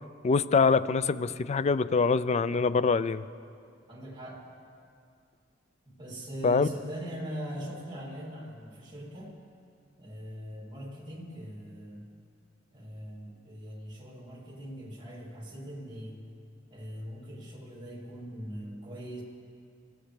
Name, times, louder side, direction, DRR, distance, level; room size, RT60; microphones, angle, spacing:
voice 1, 0.2-3.2 6.4-6.7, left 4 dB, 35° left, 15 dB, 0.4 m, -24 dB
voice 2, 3.9-4.4 5.8-9.4 10.0-12.1 12.7-16.3 16.7-19.2, equal, 25° right, -2 dB, 2.8 m, -41 dB
24.5 x 16.0 x 3.4 m, 2.4 s
head